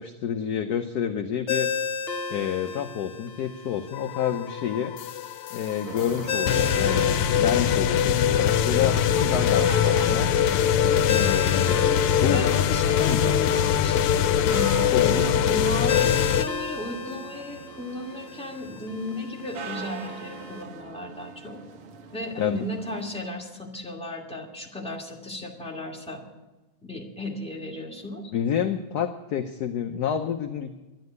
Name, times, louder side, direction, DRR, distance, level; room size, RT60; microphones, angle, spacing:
voice 1, 0.0-1.7 2.3-4.9 5.5-10.3 11.0-11.9 12.2-12.4 13.1-13.2 14.9-15.3 22.4-22.7 28.3-30.7, left 9 dB, 65° left, 7 dB, 1.0 m, -28 dB
Ringtone, 1.5-20.6, left 6 dB, 40° left, 1.3 m, -35 dB
sound 1, 3.9-16.5, left 9 dB, 85° left, 1.6 m, -23 dB
sound 2, 5.8-23.1, right 6 dB, 90° right, 2.1 m, -40 dB
voice 2, 12.3-21.6 22.1-26.2 26.8-28.2, left 1 dB, 5° left, -1 dB, 2.0 m, -35 dB
11.5 x 11.0 x 9.3 m, 1.1 s
omnidirectional pair, 2.4 m